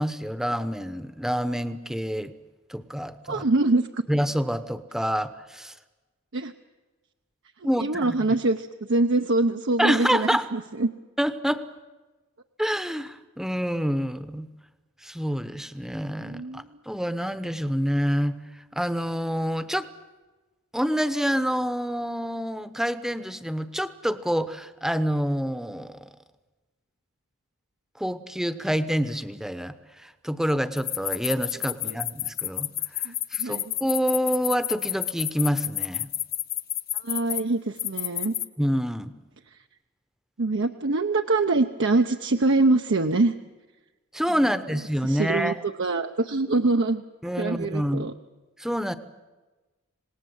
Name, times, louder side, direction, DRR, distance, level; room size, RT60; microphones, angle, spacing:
voice 1, 0.0-2.3 2.7-3.4 4.1-5.7 7.6-8.2 9.8-10.5 11.2-11.6 12.6-14.5 15.0-19.9 20.7-26.0 28.0-32.7 33.0-36.1 38.6-39.1 44.1-45.6 47.2-48.1 48.6-48.9, equal, ahead, 12 dB, 1.0 m, -27 dB
voice 2, 3.3-4.0 6.3-6.5 7.6-10.9 16.2-16.7 31.8-32.0 33.0-33.7 36.9-38.3 40.4-43.3 45.0-47.0 47.4-48.1, right 2 dB, 60° right, 5 dB, 0.8 m, -24 dB
sound 1, 30.8-37.4 37.8-38.5, left 13 dB, 45° left, 0.8 m, -29 dB
26.5 x 19.0 x 8.0 m, 1.2 s
head